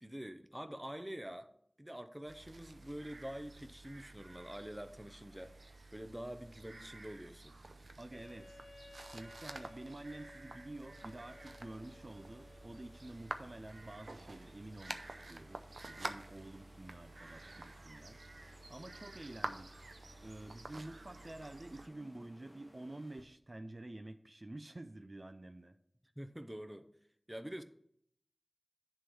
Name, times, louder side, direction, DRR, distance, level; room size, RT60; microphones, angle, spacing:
voice 1, 0.0-1.5 1.8-5.6 5.9-7.5 26.2-26.9 27.3-27.6, equal, 15° right, 10 dB, 0.7 m, -46 dB
sound 1, 2.3-21.9, right 2 dB, 90° right, 0.6 m, -50 dB
voice 2, 8.0-8.6 9.0-18.2 18.7-19.7 20.2-25.8, right 2 dB, 50° right, 8 dB, 0.5 m, -49 dB
Wind instrument woodwind instrument, 8.1-13.2, left 2 dB, 60° left, 0.6 m, -58 dB
sound 2, 10.7-23.2, left 1 dB, 20° left, 1.0 m, -63 dB
9.8 x 3.8 x 7.0 m, 0.69 s
wide cardioid pair, 50°, 0 cm